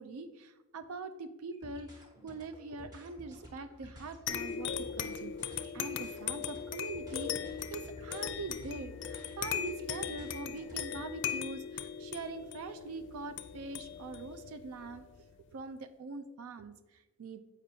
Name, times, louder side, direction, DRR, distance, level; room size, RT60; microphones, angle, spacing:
voice 1, 0.0-15.1 15.5-17.4, right 3 dB, 75° right, 10 dB, 0.4 m, -43 dB
sound 1, 1.5-11.1, equal, 20° right, 1.3 m, -52 dB
sound 2, 4.3-15.3, left 8 dB, 55° left, 0.4 m, -39 dB
7.7 x 5.1 x 2.7 m, 1.1 s
head